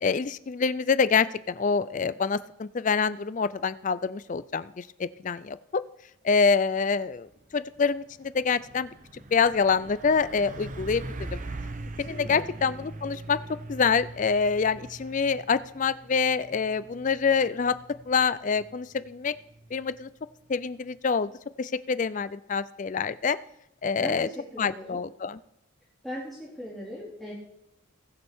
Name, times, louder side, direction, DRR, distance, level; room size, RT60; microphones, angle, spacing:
voice 1, 0.0-5.8 6.2-7.3 7.5-8.9 9.3-11.4 12.0-13.4 13.7-17.8 18.1-19.3 19.7-20.1 20.5-21.3 21.6-23.4 23.8-24.3 24.6-25.4, left 5 dB, 35° left, 15 dB, 0.4 m, -26 dB
Truck, 7.2-7.4 7.8-20.3, right 2 dB, 35° right, 0.7 m, -42 dB
voice 2, 12.1-12.5 24.0-25.0 26.0-27.3, left 1 dB, ahead, -8 dB, 2.5 m, -39 dB
20.0 x 6.9 x 3.6 m, 0.84 s
head